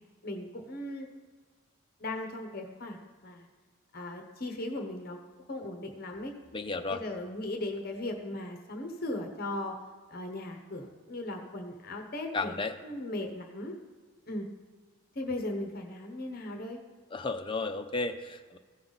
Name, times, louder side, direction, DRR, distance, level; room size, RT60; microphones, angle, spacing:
voice 1, 0.2-1.1 2.0-3.5 3.9-5.2 5.5-6.3 6.9-9.8 10.1-12.5 12.8-13.7 14.3-14.5 15.1-16.8, left 1 dB, 45° left, 3 dB, 0.9 m, -37 dB
voice 2, 6.5-7.0 12.3-12.8 17.1-18.6, left 3 dB, 25° left, 7 dB, 0.5 m, -33 dB
15.5 x 5.7 x 4.0 m, 1.5 s
head